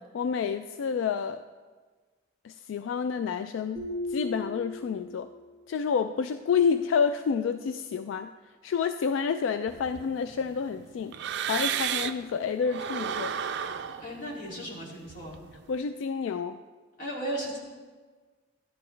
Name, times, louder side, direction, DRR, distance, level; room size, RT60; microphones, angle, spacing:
voice 1, 0.1-1.4 2.4-5.3 5.7-8.3 8.6-11.1 11.5-13.3 15.7-16.6, left 6 dB, 75° left, 10 dB, 0.3 m, -29 dB
sound 1, 3.8-5.5, left 1 dB, 25° left, 3.3 m, -36 dB
sound 2, 9.7-12.3 12.6-15.7, right 8 dB, 60° right, 0.4 m, -34 dB
voice 2, 14.0-15.4 17.0-17.6, right 1 dB, 45° left, -4 dB, 2.4 m, -35 dB
13.0 x 9.8 x 3.2 m, 1.4 s
head